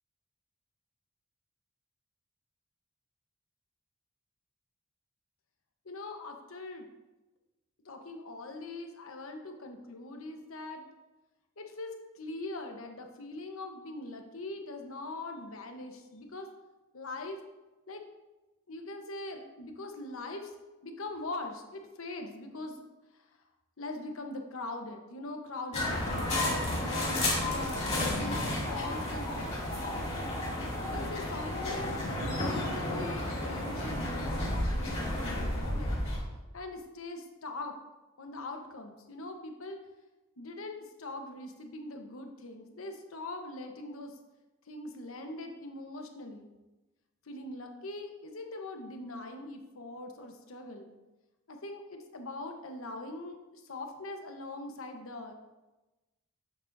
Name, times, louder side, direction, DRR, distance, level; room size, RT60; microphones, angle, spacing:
voice 1, 5.8-6.9 7.8-10.8 11.6-16.5 16.9-17.4 17.9-18.0 18.7-20.6 20.8-22.8 23.1-23.3 23.8-29.7 30.8-36.0 36.5-37.8 38.2-39.8 40.4-44.2 44.7-46.5 47.2-50.9 51.5-55.3, left 2 dB, 85° left, 4 dB, 1.0 m, -42 dB
sound 1, 25.7-36.2, left 1 dB, 30° left, 2.5 m, -32 dB
11.0 x 7.3 x 2.6 m, 1.1 s
head